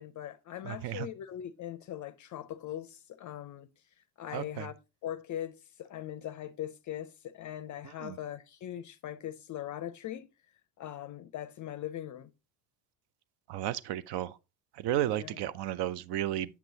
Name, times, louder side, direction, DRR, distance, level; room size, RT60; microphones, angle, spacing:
voice 1, 0.0-3.7 4.2-4.8 5.0-10.3 10.8-12.3 15.1-15.3, left 11 dB, 40° left, 0.5 m, -40 dB
voice 2, 0.6-1.1 4.3-4.7 7.8-8.2 13.5-14.4 14.7-16.6, right 12 dB, 55° right, 0.6 m, -33 dB
7.2 x 6.1 x 2.7 m
supercardioid pair, 90°, 47 cm